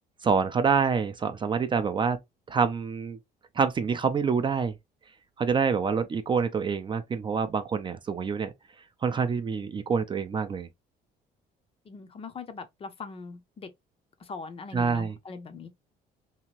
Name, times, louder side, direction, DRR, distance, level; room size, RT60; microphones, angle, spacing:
voice 1, 0.2-2.2 2.5-3.2 3.6-4.8 5.4-8.5 9.0-10.7 14.7-15.1, right 5 dB, 30° right, 0.4 m, -26 dB
voice 2, 11.9-13.7 14.2-15.7, left 4 dB, 35° left, 0.5 m, -41 dB
2.8 x 2.5 x 2.9 m
cardioid pair, 110°, 17 cm